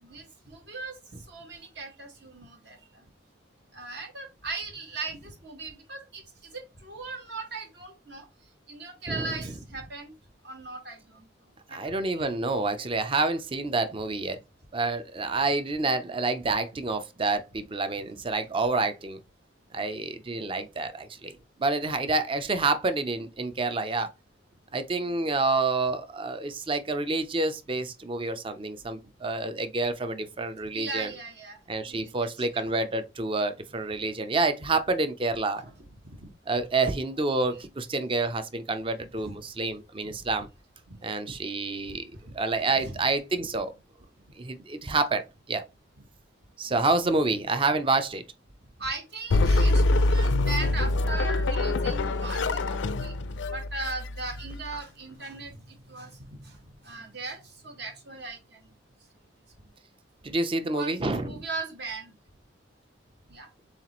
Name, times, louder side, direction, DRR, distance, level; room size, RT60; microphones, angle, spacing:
voice 1, 0.0-1.0 1.3-3.0 3.7-8.3 8.7-10.1 10.4-11.2 11.7-12.3 30.7-31.6 31.9-32.6 35.6-35.7 36.2-36.3 39.2-39.3 40.0-40.2 40.9-41.0 41.3-41.4 41.8-41.9 42.2-42.3 42.8-42.9 48.8-53.1 53.5-56.6 56.8-58.6 60.8-62.1 63.3-63.5, right 3 dB, 60° right, 1.3 m, -39 dB
voice 2, 9.1-9.5 11.7-14.4 14.7-19.2 19.7-24.1 24.7-31.1 31.7-35.7 36.5-40.5 41.0-43.7 44.4-45.7 46.6-48.2 50.9-51.0 60.2-61.5, right 3 dB, 25° right, 0.5 m, -28 dB
sound 1, 49.3-54.8, left 2 dB, 70° left, 0.4 m, -25 dB
7.1 x 2.4 x 3.0 m
head